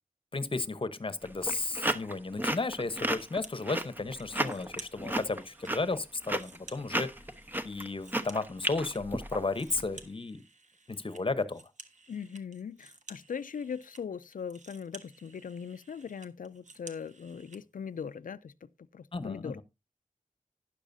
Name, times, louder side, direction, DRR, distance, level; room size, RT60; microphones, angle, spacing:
voice 1, 0.3-7.1 7.6-10.4 10.9-11.6 19.1-19.6, left 3 dB, 40° left, 1.0 m, -33 dB
sound 1, 1.2-9.8, right 1 dB, 15° right, 1.0 m, -33 dB
sound 2, 3.1-3.9 4.2-5.7 6.1-9.0 9.3-17.6, right 3 dB, 60° right, 1.4 m, -53 dB
voice 2, 12.1-19.6, left 6 dB, 80° left, 0.5 m, -40 dB
12.0 x 9.9 x 2.7 m
wide cardioid pair, 80°, 14 cm